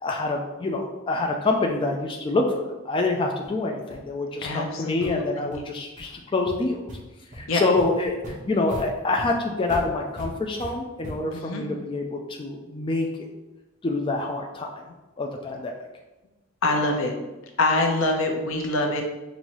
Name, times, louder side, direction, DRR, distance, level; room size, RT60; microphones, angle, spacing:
voice 1, 0.0-6.8 7.3-13.3 13.8-14.8 15.2-15.7, left 2 dB, 25° left, 1 dB, 0.4 m, -26 dB
sound 1, 3.4-3.5 3.9-4.1 4.4-4.5 5.0-5.1 5.5-5.6 6.0-6.1 6.5-7.0 7.3-7.4 7.8-11.4, equal, 40° right, 1.1 m, -39 dB
voice 2, 4.4-5.6 7.5-7.6 11.3-11.6 16.6-17.2 17.6-19.0, left 2 dB, 80° left, 2 dB, 0.7 m, -25 dB
5.3 x 2.6 x 3.0 m, 1.1 s
head